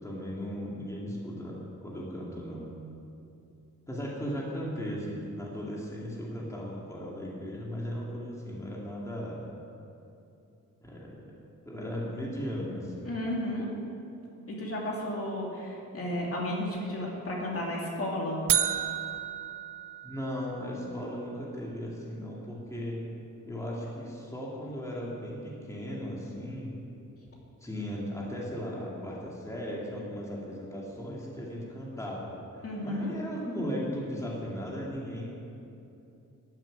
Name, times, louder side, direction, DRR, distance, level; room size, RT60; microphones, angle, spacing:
voice 1, 0.0-2.7 3.9-9.4 10.8-11.3 11.6-13.1 20.0-23.0 23.4-26.7 27.6-35.3, equal, 10° left, -5 dB, 2.2 m, -37 dB
voice 2, 13.0-13.7 14.5-18.4 32.6-33.1, left 1 dB, 45° left, -3 dB, 2.7 m, -33 dB
sound 1, 18.5-20.6, right 9 dB, 80° right, 0.7 m, -31 dB
13.0 x 7.6 x 9.3 m, 2.8 s
wide cardioid pair, 150°, 32 cm